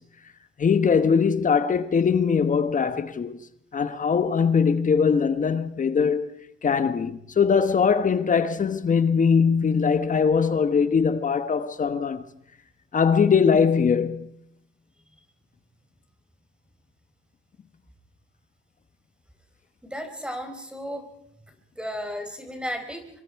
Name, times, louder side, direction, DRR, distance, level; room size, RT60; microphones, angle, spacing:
voice 1, 0.6-3.4 3.7-6.3 6.6-12.2 12.9-14.3, left 6 dB, 40° left, 1.3 m, -21 dB
voice 2, 19.8-21.0 21.8-23.2, equal, 5° right, 4.7 m, -34 dB
25.5 x 23.5 x 4.8 m
cardioid pair, 90°, 20 cm